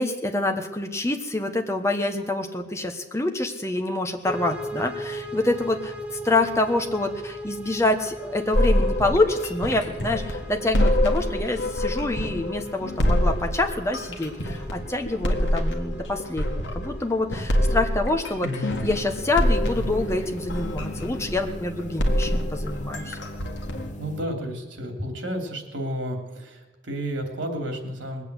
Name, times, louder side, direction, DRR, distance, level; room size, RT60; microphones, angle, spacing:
voice 1, 0.0-18.5 18.8-23.2, left 2 dB, 15° left, 4 dB, 1.2 m, -26 dB
sound 1, 4.2-23.0, right 1 dB, 5° right, 0.9 m, -40 dB
sound 2, 8.5-23.9, equal, 70° left, 1.7 m, -26 dB
voice 2, 18.4-18.7 24.0-28.2, equal, 80° right, 4 dB, 2.9 m, -31 dB
sound 3, 19.2-24.2, left 1 dB, 40° left, 1.0 m, -40 dB
20.0 x 8.3 x 8.0 m, 1.2 s
head